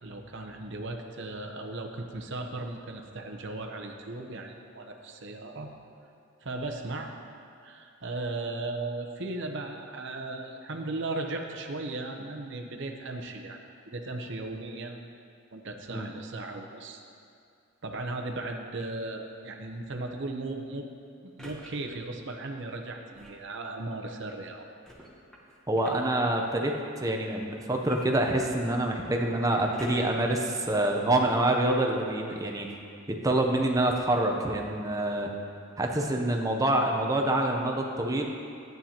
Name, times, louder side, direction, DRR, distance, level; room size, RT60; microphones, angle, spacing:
voice 1, 0.0-5.7 6.4-7.1 7.6-13.6 13.9-15.1 15.5-17.0 17.8-20.9 21.2-24.7, right 2 dB, 60° right, 3 dB, 0.8 m, -36 dB
sound 1, 18.7-19.1 21.4-21.7 23.1-23.5 24.8-26.1 27.8-28.8 29.7-30.3 30.9-31.0, equal, 5° left, 1.0 m, -48 dB
voice 2, 25.7-32.7 33.1-35.3 35.8-38.2, right 1 dB, 15° right, 2 dB, 0.6 m, -26 dB
11.5 x 9.1 x 2.9 m, 2.4 s
head